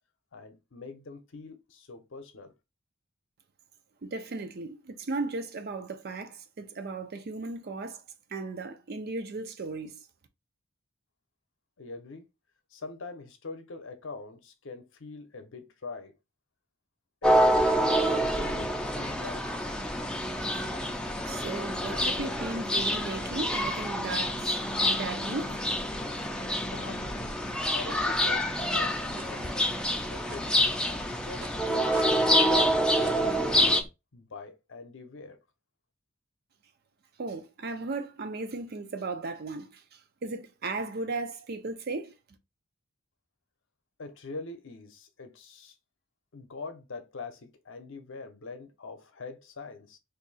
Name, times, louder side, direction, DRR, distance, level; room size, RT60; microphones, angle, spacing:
voice 1, 0.3-2.5 11.8-12.3 12.7-16.1 17.2-19.7 26.7-27.3 27.7-29.6 30.1-30.6 31.1-32.0 32.5-33.7 34.1-35.4 44.0-45.8 46.3-50.0, left 3 dB, 65° left, 0.7 m, -43 dB
voice 2, 4.0-8.0 8.3-10.0 21.3-24.6 24.9-25.6 37.2-42.1, right 3 dB, 50° right, 0.5 m, -36 dB
sound 1, 17.2-33.8, equal, 5° left, 0.4 m, -27 dB
sound 2, 28.6-30.0 30.3-33.9, right 3 dB, 80° right, 0.8 m, -44 dB
2.7 x 2.6 x 4.0 m
head